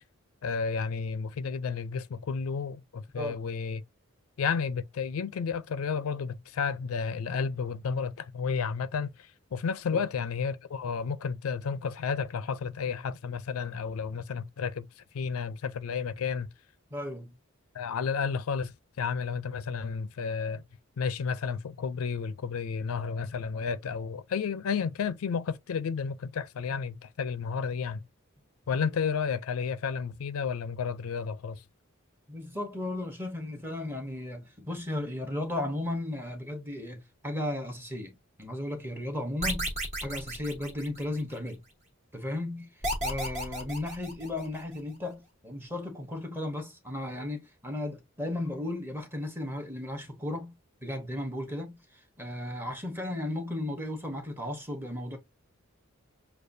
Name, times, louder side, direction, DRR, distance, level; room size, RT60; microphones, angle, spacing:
voice 1, 0.4-3.8 4.4-16.5 17.7-20.6 21.0-28.0 28.7-31.6, left 6 dB, 80° left, 0.4 m, -32 dB
voice 2, 16.9-17.4 32.3-39.7 40.0-41.6 42.1-42.7 43.0-50.6 50.8-51.8 52.2-55.2, left 1 dB, 10° right, 0.9 m, -35 dB
sound 1, 39.4-41.4 42.8-44.6, right 1 dB, 35° right, 1.3 m, -33 dB
6.5 x 2.3 x 2.6 m
head